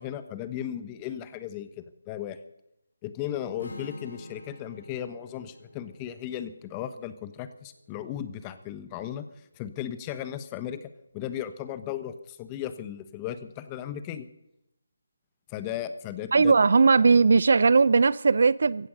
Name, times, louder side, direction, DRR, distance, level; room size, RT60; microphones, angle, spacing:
voice 1, 0.0-2.4 3.0-9.2 9.6-14.3 15.5-16.5, left 10 dB, 20° left, 1.1 m, -36 dB
Strum, 3.6-7.8, left 1 dB, 75° left, 3.3 m, -47 dB
voice 2, 16.3-18.9, right 4 dB, 60° right, 0.5 m, -19 dB
16.0 x 15.0 x 5.4 m
figure-of-eight pair, 155°, 0 cm